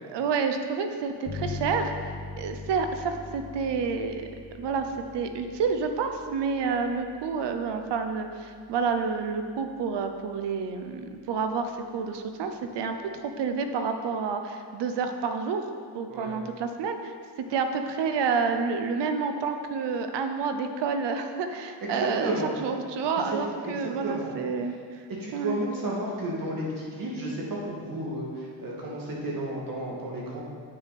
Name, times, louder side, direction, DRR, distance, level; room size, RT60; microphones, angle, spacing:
voice 1, 0.1-1.9 2.4-4.3 4.6-15.6 15.9-25.0 25.3-25.6, right 5 dB, 70° right, 7 dB, 0.9 m, -29 dB
sound 1, 1.2-10.5, left 3 dB, 50° left, 1.8 m, -42 dB
voice 2, 21.8-22.5 23.6-24.3 25.2-30.4, right 1 dB, 50° right, -4 dB, 2.4 m, -32 dB
9.2 x 6.4 x 4.2 m, 2.1 s
cardioid pair, 85°, 43 cm